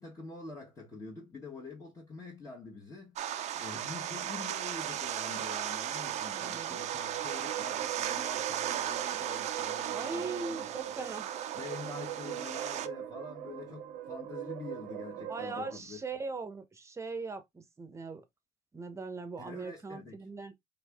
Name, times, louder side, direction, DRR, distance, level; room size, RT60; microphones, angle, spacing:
voice 1, 0.0-11.1 11.5-16.0 19.4-20.2, left 3 dB, 20° left, 1.4 m, -46 dB
sound 1, 3.2-12.9, right 11 dB, 45° right, 0.5 m, -36 dB
voice 2, 6.3-6.8 9.9-11.3 11.8-12.0 15.2-18.2 18.7-20.5, right 4 dB, 20° right, 0.9 m, -40 dB
sound 2, 6.5-15.8, right 11 dB, 90° right, 0.9 m, -42 dB
4.6 x 2.8 x 3.5 m
cardioid pair, 130°, 16 cm